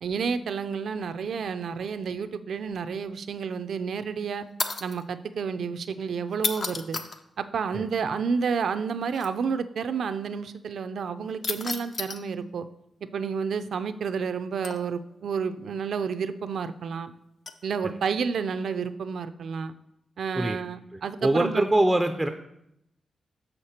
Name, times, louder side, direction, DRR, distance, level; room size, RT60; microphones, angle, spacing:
voice 1, 0.0-4.4 4.8-7.0 7.4-12.7 13.1-17.1 17.6-19.7 20.2-21.6, right 6 dB, 70° right, 11 dB, 0.4 m, -30 dB
sound 1, 4.6-5.0 6.3-7.2 9.1-9.3 11.4-12.2 14.6-15.1 17.5-17.7 18.6-18.9, left 4 dB, 50° left, 0.5 m, -32 dB
voice 2, 20.9-22.3, right 1 dB, 10° right, 7 dB, 0.4 m, -24 dB
6.5 x 6.4 x 4.3 m, 0.80 s
cardioid pair, 105°, 0 cm